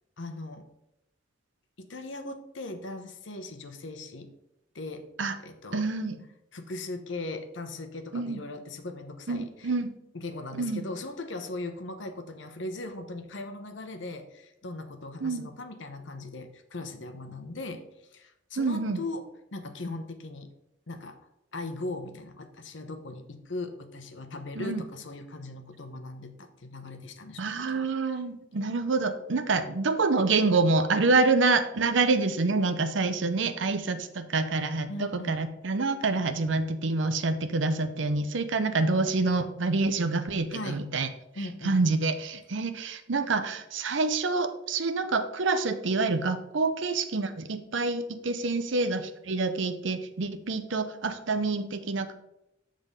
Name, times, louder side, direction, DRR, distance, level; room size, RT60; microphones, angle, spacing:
voice 1, 0.2-0.6 1.8-4.3 4.7-5.1 5.4-5.9 6.5-9.7 10.1-17.8 18.1-20.5 20.9-21.2 21.5-27.9 34.9-35.4 40.5-40.8 41.3-41.8 43.2-43.3, left 2 dB, 70° left, 7 dB, 0.9 m, -39 dB
voice 2, 5.7-6.2 8.1-8.4 9.3-9.9 10.6-10.8 15.2-15.5 18.6-19.0 24.6-24.8 27.4-41.1 41.6-52.1, right 3 dB, 70° right, 10 dB, 0.7 m, -27 dB
7.4 x 3.8 x 6.6 m, 0.85 s
head